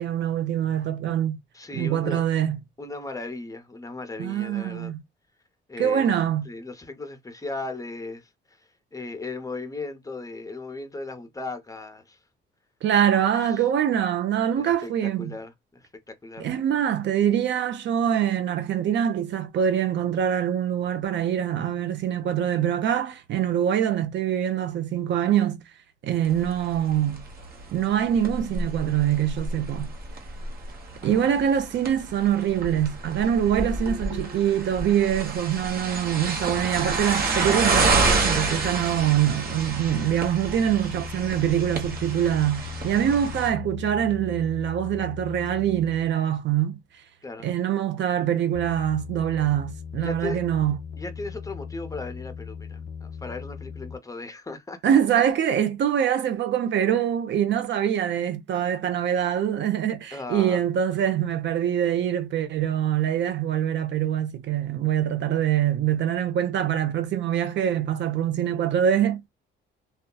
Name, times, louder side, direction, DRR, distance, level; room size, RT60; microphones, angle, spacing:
voice 1, 0.0-1.4 1.7-2.6 4.2-5.0 5.8-6.5 12.8-15.3 16.4-25.6 26.0-27.2 27.7-29.9 31.0-46.8 47.4-50.8 54.8-69.2, right 10 dB, 65° right, 0.6 m, -24 dB
voice 2, 1.5-2.2 2.8-4.9 5.7-6.2 6.5-8.6 8.9-12.2 13.1-13.2 14.6-16.5 31.0-31.3 47.2-47.5 50.0-50.4 51.0-54.8 60.1-60.6, left 3 dB, 15° left, 0.6 m, -37 dB
sound 1, 26.3-43.5, right 3 dB, 50° right, 1.0 m, -29 dB
sound 2, 35.7-46.4 48.5-54.0, left 6 dB, 65° left, 0.5 m, -39 dB
2.7 x 2.3 x 2.2 m
cardioid pair, 90°, 20 cm